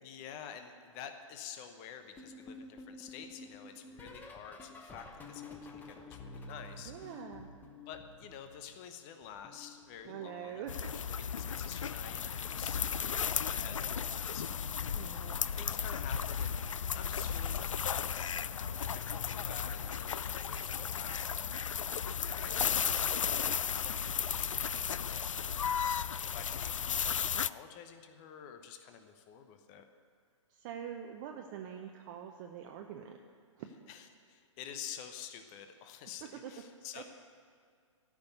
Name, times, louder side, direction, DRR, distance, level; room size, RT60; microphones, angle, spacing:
voice 1, 0.0-7.2 7.9-12.8 13.4-14.9 15.5-16.6 16.9-21.5 22.2-25.7 26.2-29.9 33.9-37.0, left 8 dB, 30° left, 7 dB, 1.0 m, -49 dB
sound 1, 2.2-8.9 9.2-10.8 11.8-12.1 12.4-12.7 14.3-14.6 14.9-15.1 16.7-16.8, left 3 dB, 10° left, 1.1 m, -51 dB
voice 2, 6.9-7.5 10.1-10.9 14.9-15.6 30.5-33.2 33.6-33.7 36.2-36.5 37.0-37.1, right 9 dB, 35° right, 3 dB, 0.8 m, -44 dB
sound 2, 10.7-27.5, left 7 dB, 75° left, 0.4 m, -34 dB
13.5 x 6.1 x 9.3 m, 2.1 s
figure-of-eight pair, 115°, 16 cm